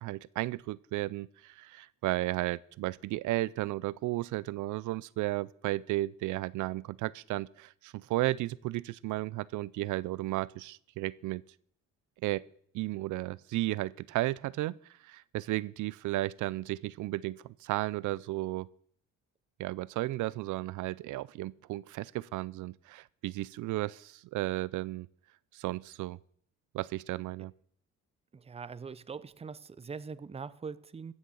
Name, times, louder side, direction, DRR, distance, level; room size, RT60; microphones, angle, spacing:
voice 1, 0.0-11.4 12.2-12.4 12.7-14.8 15.0-18.7 19.6-25.1 25.5-26.2 26.7-27.5, right 17 dB, 80° right, 0.4 m, -34 dB
voice 2, 28.3-31.1, right 5 dB, 20° right, 0.6 m, -42 dB
15.0 x 6.4 x 7.0 m
cardioid pair, 90°, 30 cm